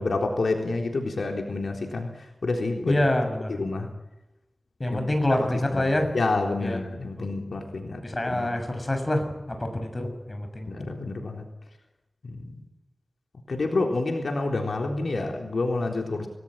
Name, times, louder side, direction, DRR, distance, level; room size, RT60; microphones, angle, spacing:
voice 1, 0.0-2.1 2.4-2.9 3.5-3.9 4.9-5.0 5.4-8.5 10.7-11.4 12.2-12.5 13.5-16.3, left 3 dB, 75° left, 2 dB, 3.8 m, -28 dB
voice 2, 2.9-3.6 4.8-6.1 6.6-6.8 7.2-7.3 8.0-9.2 9.6-10.7, left 1 dB, 30° left, 6 dB, 6.8 m, -26 dB
28.5 x 19.5 x 9.0 m, 0.98 s
wide cardioid pair, 75°, 0 cm